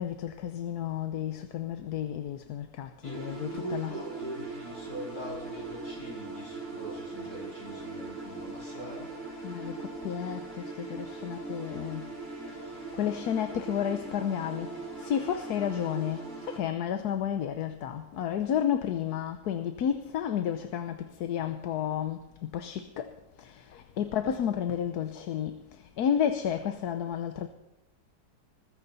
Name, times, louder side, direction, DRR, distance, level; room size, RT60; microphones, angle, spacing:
voice 1, 0.0-3.9 9.4-12.1 12.5-27.5, left 9 dB, 80° left, 1.3 m, -32 dB
voice 2, 3.0-9.1, right 1 dB, 65° left, 7.5 m, -42 dB
sound 1, 3.0-16.6, right 3 dB, 75° right, 6.4 m, -40 dB
20.5 x 14.5 x 4.1 m
omnidirectional pair, 1.7 m